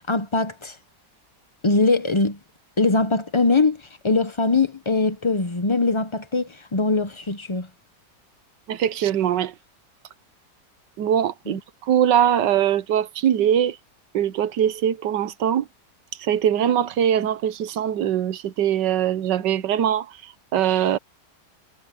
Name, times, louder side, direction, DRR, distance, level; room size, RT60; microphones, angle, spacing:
voice 1, 0.1-0.8 1.6-2.4 2.8-7.7 11.5-11.6, left 3 dB, 30° left, 0.6 m, -22 dB
voice 2, 8.7-9.5 11.0-13.8 14.1-15.7 16.2-21.0, right 10 dB, 85° right, 1.5 m, -22 dB
omnidirectional pair, 1.8 m